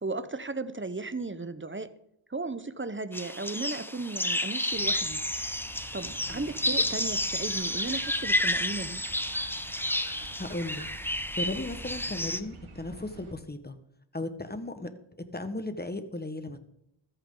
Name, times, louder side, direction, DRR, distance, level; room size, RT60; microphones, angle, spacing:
voice 1, 0.0-1.9 2.3-5.2 5.9-9.0, right 3 dB, 25° right, 12 dB, 1.1 m, -35 dB
sound 1, 3.1-12.4, left 1 dB, 5° left, 0.9 m, -31 dB
sound 2, 4.7-13.3, right 2 dB, 85° right, 3.0 m, -47 dB
voice 2, 10.4-10.8 11.4-13.7 14.1-14.9 15.3-16.6, left 2 dB, 20° left, 9 dB, 1.6 m, -36 dB
14.5 x 14.5 x 4.0 m, 0.76 s
wide cardioid pair, 65°, 48 cm